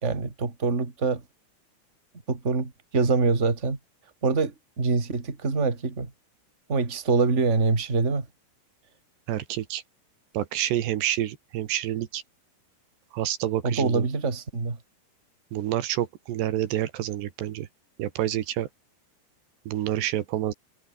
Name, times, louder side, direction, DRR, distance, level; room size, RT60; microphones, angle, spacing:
voice 1, 0.0-1.2 2.3-3.8 4.2-6.1 6.7-8.3 13.6-14.8, right 4 dB, 20° right, 2.8 m, -25 dB
voice 2, 9.3-9.8 10.3-12.2 13.1-14.1 15.5-17.7 18.0-18.7 19.7-20.5, right 12 dB, 75° right, 3.6 m, -28 dB
omnidirectional pair, 4.9 m